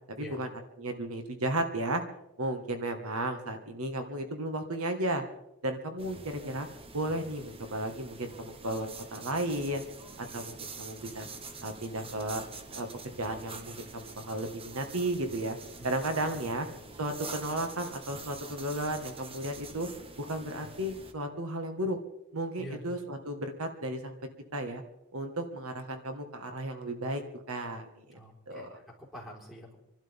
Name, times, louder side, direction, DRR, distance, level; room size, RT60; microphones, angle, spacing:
voice 1, 0.2-0.5 0.8-2.0 2.4-5.2 5.6-6.7 6.9-9.8 10.2-11.3 11.6-12.4 12.7-12.9 13.2-15.6 15.8-16.7 17.0-19.9 20.2-22.0 22.3-24.1 24.5-24.8 25.1-27.2 27.5-28.2 28.5-28.8, right 1 dB, 80° right, 5 dB, 1.8 m, -34 dB
sound 1, 6.0-21.1, right 3 dB, 25° right, 1.0 m, -46 dB
voice 2, 28.1-29.8, equal, ahead, -5 dB, 4.6 m, -46 dB
27.5 x 12.0 x 3.7 m, 0.86 s
head